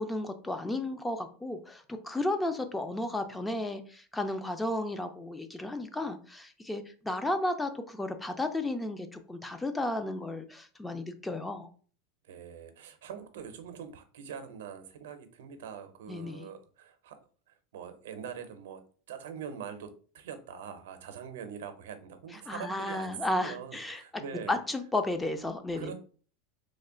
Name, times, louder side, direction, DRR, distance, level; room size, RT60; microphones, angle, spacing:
voice 1, 0.0-11.7 16.1-16.5 22.3-24.0 24.5-25.9, left 2 dB, 10° left, 8 dB, 0.4 m, -33 dB
voice 2, 12.2-17.2 17.7-24.5 25.7-25.9, right 7 dB, 90° right, 9 dB, 0.6 m, -43 dB
3.1 x 2.2 x 3.6 m, 0.42 s
supercardioid pair, 140°, 0 cm